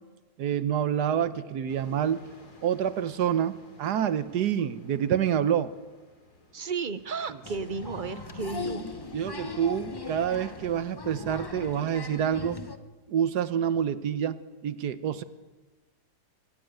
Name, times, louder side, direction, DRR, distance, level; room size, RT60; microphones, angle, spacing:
voice 1, 0.4-2.2 2.6-5.7 9.1-12.6 13.1-14.4 14.6-15.2, right 9 dB, 80° right, 13 dB, 1.5 m, -27 dB
sound 1, 1.7-10.9, left 1 dB, 70° left, 3.8 m, -53 dB
voice 2, 6.5-8.8, right 4 dB, 45° right, 13 dB, 0.7 m, -33 dB
Applause, 7.4-12.8, left 3 dB, 20° left, 0.7 m, -39 dB
24.0 x 15.0 x 9.0 m, 1.3 s
omnidirectional pair, 1.7 m